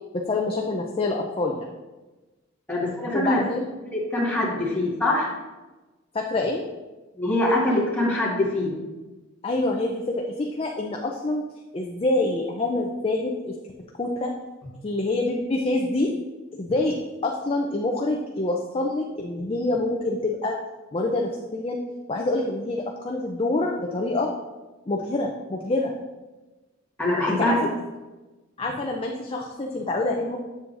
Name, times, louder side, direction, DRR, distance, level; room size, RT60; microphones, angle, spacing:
voice 1, 0.1-1.7 3.1-3.7 4.5-4.7 6.1-6.7 9.4-11.4 11.7-13.5 14.0-14.3 14.8-16.1 16.6-16.9 17.2-20.6 20.9-21.8 22.1-24.3 24.9-25.9 27.3-27.7 28.6-30.4, left 2 dB, 30° left, 0 dB, 0.5 m, -26 dB
voice 2, 2.7-3.4 3.9-5.3 7.2-8.7 27.0-27.5, left 1 dB, 10° left, -8 dB, 1.9 m, -23 dB
7.8 x 7.3 x 2.6 m, 1.2 s
head